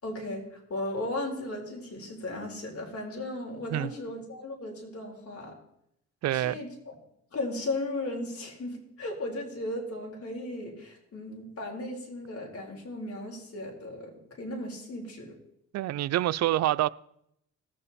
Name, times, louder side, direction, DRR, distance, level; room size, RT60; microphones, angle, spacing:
voice 1, 0.0-5.6 6.3-6.9 7.3-15.4, left 1 dB, 50° left, 3.9 m, -36 dB
voice 2, 6.2-6.6 15.7-16.9, right 14 dB, 60° right, 0.5 m, -26 dB
18.5 x 7.5 x 4.1 m
cardioid pair, 90°, 30 cm